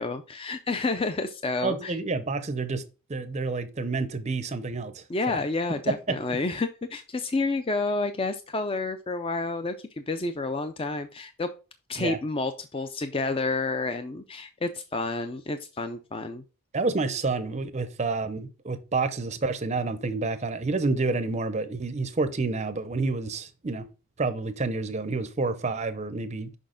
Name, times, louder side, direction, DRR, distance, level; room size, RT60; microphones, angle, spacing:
voice 1, 0.0-1.9 5.1-11.5 11.9-16.4, left 3 dB, 25° left, 0.4 m, -30 dB
voice 2, 1.6-2.8 3.1-5.4 5.9-6.4 12.0-12.2 16.7-23.9 24.2-26.6, right 3 dB, 30° right, 0.5 m, -29 dB
6.3 x 5.6 x 3.7 m
head